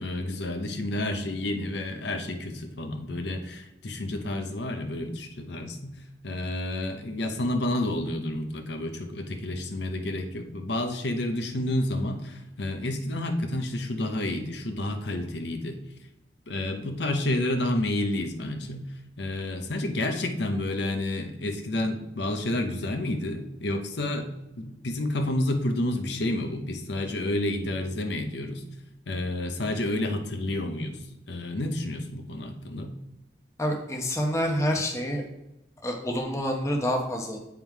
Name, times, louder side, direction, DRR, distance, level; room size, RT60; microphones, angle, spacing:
voice 1, 0.0-5.9 6.2-15.8 16.5-18.8 19.2-24.3 24.6-28.6 29.1-31.0 31.3-32.9, left 1 dB, 70° left, 5 dB, 0.8 m, -30 dB
voice 2, 33.6-35.2 35.8-37.4, equal, 15° left, 1 dB, 0.9 m, -27 dB
9.1 x 3.6 x 4.6 m, 0.91 s
head